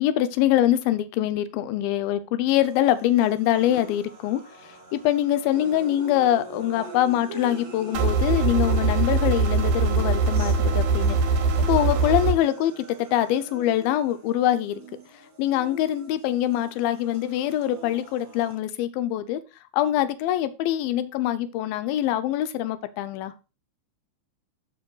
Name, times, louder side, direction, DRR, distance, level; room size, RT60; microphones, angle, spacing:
voice 1, 0.0-11.2 11.7-14.8 15.4-19.4 19.7-23.3, left 12 dB, 85° left, 2.5 m, -24 dB
sound 1, 2.6-18.6, right 1 dB, 40° right, 2.0 m, -42 dB
sound 2, 7.9-12.3, right 4 dB, 90° right, 3.1 m, -22 dB
14.5 x 5.2 x 2.3 m
omnidirectional pair, 4.2 m